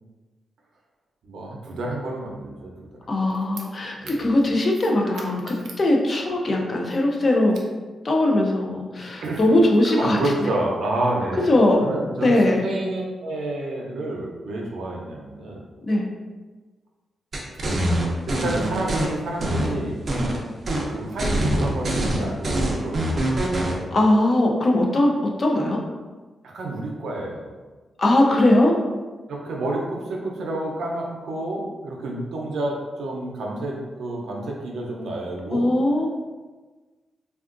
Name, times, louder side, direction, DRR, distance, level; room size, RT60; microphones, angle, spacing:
voice 1, 1.2-3.1 4.0-4.3 9.2-9.5 9.9-11.5 11.8-15.6 18.3-20.0 20.9-23.3 26.4-27.5 29.3-35.7, right 1 dB, 85° right, -1 dB, 0.6 m, -29 dB
voice 2, 3.1-7.5 8.0-10.2 11.5-11.8 12.2-12.6 15.9-16.1 23.9-25.1 25.4-25.8 28.0-28.7 35.5-36.1, left 1 dB, 35° left, 0 dB, 0.4 m, -20 dB
sound 1, 17.3-19.1 19.4-20.4 20.7-20.9 21.2-23.8, right 1 dB, 40° right, 0.5 m, -24 dB
3.5 x 2.3 x 2.5 m, 1.3 s
wide cardioid pair, 160°, 0 cm